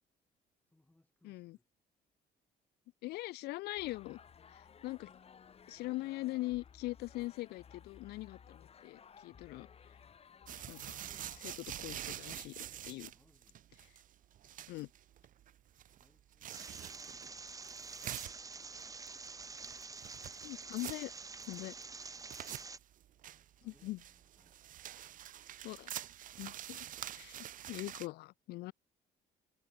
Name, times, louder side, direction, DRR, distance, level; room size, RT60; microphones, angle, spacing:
voice 1, 0.6-1.7 13.1-13.7 15.8-17.5 22.9-24.7, left 2 dB, 10° left, 7.5 m, -72 dB
voice 2, 1.2-1.6 3.0-4.2 4.5-5.1 5.7-9.7 10.7-11.0 11.3-13.1 14.7-14.9 20.4-21.2 21.5-21.8 22.0-22.1 23.6-24.0 25.6-25.9 26.4-26.9 27.1-28.7, left 19 dB, 75° left, 0.4 m, -42 dB
sound 1, 3.8-11.4, left 7 dB, 35° left, 1.8 m, -58 dB
sound 2, 10.5-28.1, right 11 dB, 50° right, 0.7 m, -47 dB
sound 3, 16.5-22.8, right 4 dB, 20° right, 1.1 m, -48 dB
cardioid pair, 110°, 17 cm